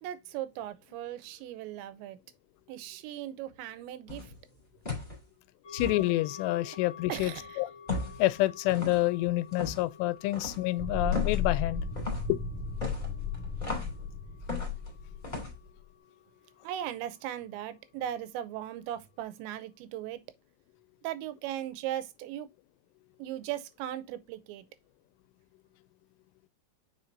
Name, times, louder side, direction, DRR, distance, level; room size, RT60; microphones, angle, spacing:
voice 1, 0.0-2.2 2.7-4.3 7.1-7.6 16.6-20.2 21.0-22.5 23.2-24.7, right 12 dB, 90° right, 3.0 m, -38 dB
sound 1, 4.1-4.4 4.8-5.2 5.8-6.0 7.9-8.2 8.7-9.0 9.5-9.8 10.3-10.6 11.1-11.4 11.9-12.3 12.8-14.0 14.5-14.9 15.2-15.5, left 3 dB, 15° left, 2.1 m, -36 dB
sound 2, 5.6-17.3 17.7-17.8, left 6 dB, 30° left, 1.9 m, -52 dB
voice 2, 5.7-7.7 8.2-11.8 12.3-12.4, left 17 dB, 85° left, 2.6 m, -28 dB
sound 3, 10.8-15.5, left 6 dB, ahead, 1.9 m, -34 dB
7.5 x 5.6 x 2.6 m
omnidirectional pair, 5.1 m